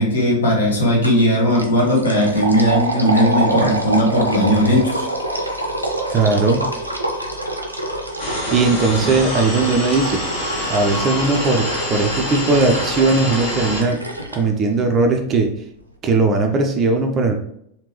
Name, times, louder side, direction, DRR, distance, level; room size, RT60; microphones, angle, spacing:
voice 1, 0.0-5.0, equal, 70° left, -1 dB, 1.0 m, -17 dB
sound 1, 1.0-1.3 1.5-14.4, right 1 dB, 85° right, 0.5 m, -26 dB
voice 2, 6.1-6.6 8.5-10.2 10.7-14.0 14.3-15.5 16.0-17.3, right 3 dB, 25° right, 4 dB, 0.4 m, -18 dB
sound 2, 8.2-13.8, left 1 dB, 50° left, 1.5 m, -26 dB
3.4 x 2.8 x 3.0 m, 0.72 s
figure-of-eight pair, 90°, 0 cm